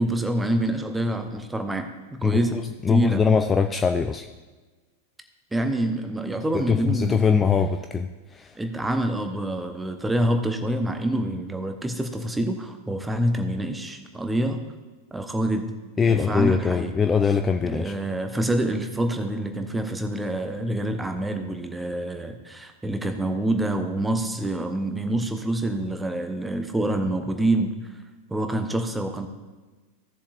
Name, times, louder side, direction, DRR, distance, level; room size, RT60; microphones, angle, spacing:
voice 1, 0.0-2.6 2.9-3.2 5.5-7.3 8.6-14.6 15.1-15.7 16.1-16.9 17.7-27.8 28.3-29.3, right 1 dB, 10° right, 6 dB, 1.0 m, -26 dB
voice 2, 2.2-4.3 6.5-8.6 16.0-17.9, left 6 dB, 15° left, 6 dB, 0.4 m, -22 dB
16.0 x 7.1 x 2.6 m, 1.3 s
figure-of-eight pair, 90°, 0 cm